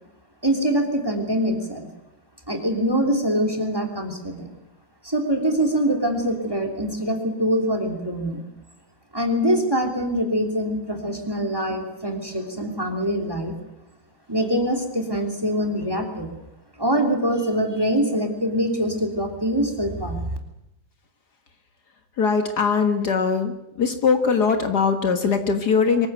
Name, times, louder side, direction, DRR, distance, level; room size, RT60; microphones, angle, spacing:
voice 1, 0.4-1.9 2.5-4.5 5.0-8.4 9.1-13.5 14.3-16.3 16.8-20.2, equal, 10° right, 4 dB, 3.3 m, -24 dB
voice 2, 22.2-23.5 23.8-26.1, left 5 dB, 60° left, 7 dB, 2.2 m, -21 dB
24.0 x 15.0 x 9.3 m, 0.88 s
omnidirectional pair, 2.0 m